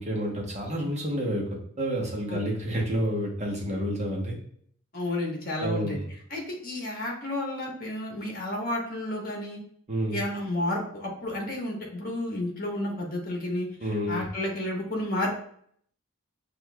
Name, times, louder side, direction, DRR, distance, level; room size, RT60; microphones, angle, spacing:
voice 1, 0.0-1.4 1.8-4.4 5.6-6.0 9.9-10.2 13.8-14.2, equal, 35° right, -2 dB, 1.0 m, -29 dB
voice 2, 4.9-9.6 10.1-15.3, left 1 dB, 45° left, -1 dB, 1.2 m, -31 dB
6.4 x 2.6 x 2.2 m, 0.63 s
head